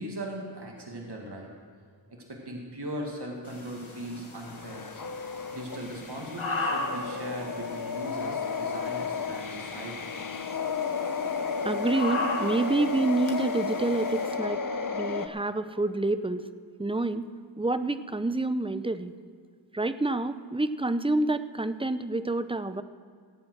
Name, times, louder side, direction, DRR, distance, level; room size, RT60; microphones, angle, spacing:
voice 1, 0.0-1.5 2.1-4.9 5.5-10.0, right 1 dB, 55° right, 0 dB, 2.1 m, -39 dB
sound 1, 3.4-14.4, left 2 dB, 90° left, 1.8 m, -38 dB
sound 2, 4.4-15.3, left 5 dB, 45° left, 0.8 m, -33 dB
voice 2, 11.6-14.6 14.9-16.5 16.8-17.3 17.6-19.1 19.7-22.8, right 2 dB, 10° right, 11 dB, 0.6 m, -28 dB
17.0 x 8.6 x 6.2 m, 2.1 s
wide cardioid pair, 40°, 47 cm